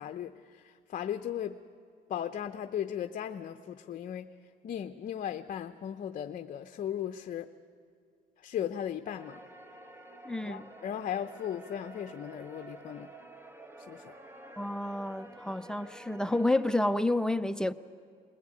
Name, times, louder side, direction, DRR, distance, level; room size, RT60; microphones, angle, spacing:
voice 1, 0.0-1.6 2.1-4.3 4.6-7.5 8.4-9.4 10.4-13.1 13.8-14.1, left 10 dB, 50° left, 0.7 m, -37 dB
sound 1, 9.0-17.0, right 2 dB, 15° right, 1.4 m, -50 dB
voice 2, 10.3-10.7 14.6-17.7, left 1 dB, 5° left, 0.5 m, -29 dB
21.0 x 21.0 x 8.6 m
cardioid pair, 110°, 17 cm